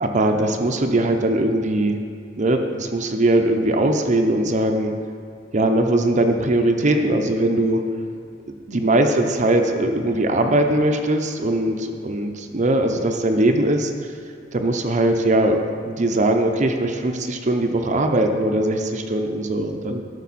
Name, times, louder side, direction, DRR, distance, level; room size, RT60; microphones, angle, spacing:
voice 1, 0.0-2.0 2.4-4.9 5.5-7.8 8.7-14.1 14.5-20.0, right 1 dB, 40° right, 4 dB, 0.7 m, -20 dB
12.5 x 6.7 x 4.1 m, 2.3 s
head